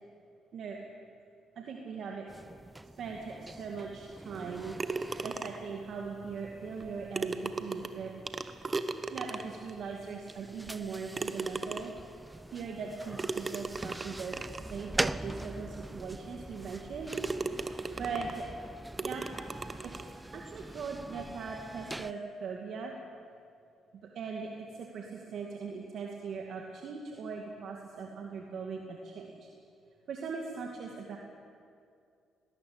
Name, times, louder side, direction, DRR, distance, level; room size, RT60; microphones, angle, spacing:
voice 1, 1.6-2.3 3.0-4.8 5.2-8.1 8.4-8.5 9.1-11.9 12.5-14.4 14.7-17.1 18.0-18.5 19.0-19.2 19.8-20.1 20.3-22.9 24.1-29.5 30.1-31.2, right 5 dB, 65° right, 0 dB, 2.3 m, -40 dB
sound 1, 2.3-22.1, right 1 dB, 10° right, 0.5 m, -43 dB
sound 2, 4.8-5.8 6.8-6.9 7.1-9.7 10.3-10.4 11.1-12.1 13.2-14.7 15.4-15.5 16.0-16.1 16.6-16.8 17.1-18.4 19.0-20.1, right 3 dB, 30° right, 1.2 m, -37 dB
19.5 x 18.5 x 8.8 m, 2.4 s
cardioid pair, 90°, 0 cm